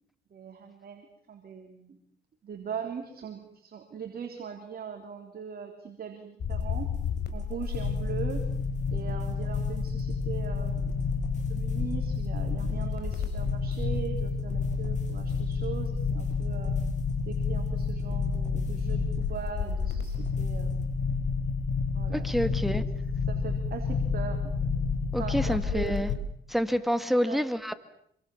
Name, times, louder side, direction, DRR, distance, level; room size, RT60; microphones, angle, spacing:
voice 1, 0.3-2.0 2.4-6.9 7.3-8.4 8.9-10.9 11.5-16.8 17.3-20.9 21.9-22.9 23.3-24.5 25.2-26.1 27.3-27.4, right 7 dB, 50° right, 4 dB, 3.8 m, -40 dB
sound 1, 6.4-26.2, left 5 dB, 60° left, 4.4 m, -30 dB
sound 2, 6.5-20.9, left 3 dB, 35° left, 7.5 m, -51 dB
voice 2, 22.1-22.8 25.1-26.1 26.5-27.7, equal, ahead, 11 dB, 2.0 m, -28 dB
26.5 x 24.0 x 7.2 m, 0.70 s
cardioid pair, 90°, 20 cm